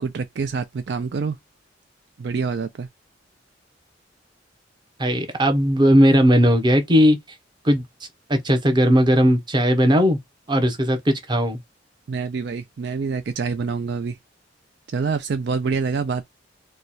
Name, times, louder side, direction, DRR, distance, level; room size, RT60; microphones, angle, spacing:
voice 1, 0.0-1.4 2.2-2.9 12.1-14.2 14.9-16.3, right 5 dB, 60° right, 0.4 m, -26 dB
voice 2, 5.0-7.2 7.6-7.8 8.3-10.2 10.5-11.6, equal, 25° right, 0.8 m, -17 dB
3.1 x 2.2 x 4.1 m
head